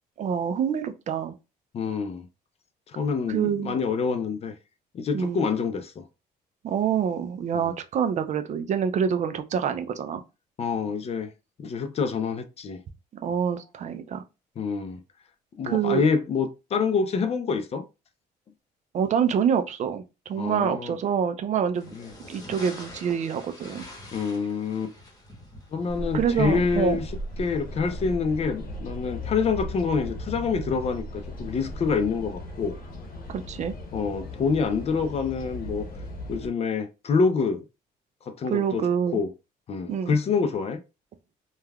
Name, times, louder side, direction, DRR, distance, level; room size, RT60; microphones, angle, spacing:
voice 1, 0.2-1.3 3.3-3.8 5.1-5.4 6.6-10.2 13.2-14.2 15.6-16.0 18.9-21.9 22.3-23.9 26.1-27.0 33.3-33.7 38.5-39.2 39.9-40.2, right 7 dB, 45° right, 0.4 m, -26 dB
voice 2, 1.7-2.3 2.9-4.5 4.9-6.0 7.5-7.7 10.6-11.3 11.6-12.8 14.6-15.0 15.6-17.8 20.4-21.0 21.9-22.1 24.1-24.9 25.7-27.1 27.4-32.8 33.9-35.8 36.3-37.6 38.3-39.3 39.7-40.8, left 5 dB, 40° left, 0.4 m, -27 dB
sound 1, 21.7-27.7, left 1 dB, 20° left, 1.0 m, -46 dB
sound 2, 25.9-36.5, left 1 dB, 55° left, 0.9 m, -37 dB
3.2 x 2.3 x 2.2 m
cardioid pair, 110°, 17 cm